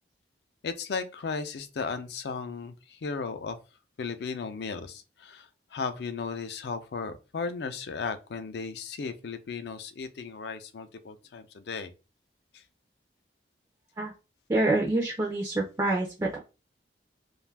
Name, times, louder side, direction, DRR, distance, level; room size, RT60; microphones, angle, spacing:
voice 1, 0.6-3.6 4.0-11.9, left 5 dB, 65° left, 0.4 m, -35 dB
voice 2, 14.5-16.4, right 2 dB, 20° right, 0.4 m, -26 dB
2.5 x 2.3 x 3.2 m
head